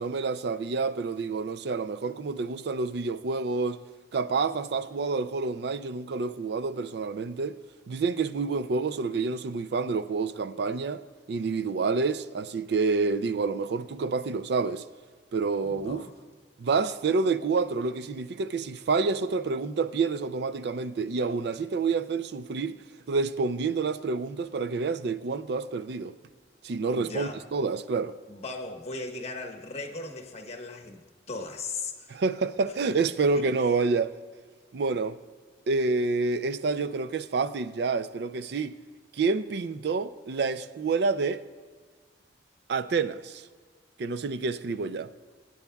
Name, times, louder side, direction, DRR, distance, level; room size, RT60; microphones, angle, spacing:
voice 1, 0.0-3.8 4.1-7.6 7.9-11.0 11.3-14.8 15.3-16.0 16.6-22.8 23.1-26.1 26.6-28.1 32.1-34.1 34.7-35.2 35.7-38.7 39.1-41.4 42.7-43.4 44.0-45.1, right 4 dB, 65° right, 0.4 m, -28 dB
voice 2, 15.6-16.1 26.9-27.5 28.3-32.2, left 3 dB, 40° left, 1.2 m, -38 dB
23.5 x 9.3 x 2.3 m
head